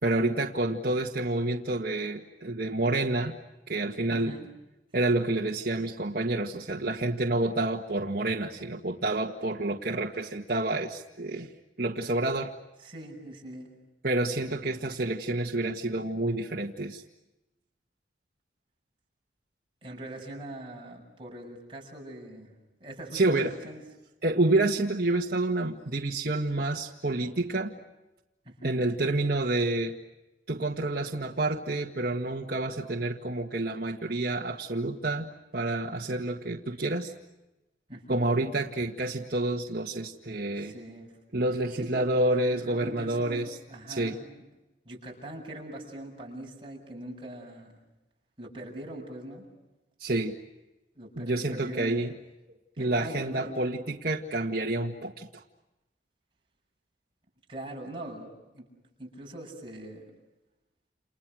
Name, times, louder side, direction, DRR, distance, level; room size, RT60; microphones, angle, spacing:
voice 1, 0.0-3.4 3.7-4.3 4.9-11.5 11.8-12.5 14.0-17.0 23.1-23.5 24.2-27.7 28.6-29.9 30.5-35.3 35.5-37.1 38.1-40.7 41.3-43.6 43.9-44.2 50.0-50.4 51.1-52.1 52.8-55.4, right 2 dB, 55° right, -1 dB, 1.8 m, -28 dB
voice 2, 4.1-4.5 12.8-13.7 19.8-22.5 22.8-23.8 28.4-28.8 37.9-38.3 40.6-41.2 41.7-44.4 44.8-47.8 48.4-49.5 50.9-52.0 52.8-53.6 57.5-58.7 59.0-60.0, right 1 dB, 30° right, 0 dB, 7.7 m, -42 dB
30.0 x 29.5 x 6.3 m, 1.0 s
head